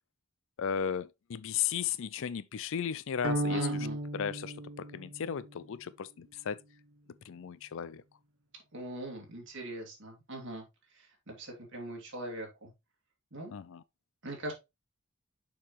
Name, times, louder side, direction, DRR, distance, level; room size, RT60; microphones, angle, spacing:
voice 1, 0.6-3.7 4.1-6.6 7.3-8.0 13.5-13.8, left 8 dB, 60° left, 0.4 m, -35 dB
sound 1, 3.2-5.6, right 1 dB, 80° right, 1.3 m, -34 dB
voice 2, 3.5-4.0 8.7-10.6 10.9-12.7 13.3-13.5 14.2-14.5, right 1 dB, 60° right, 2.7 m, -41 dB
6.7 x 5.6 x 3.0 m
head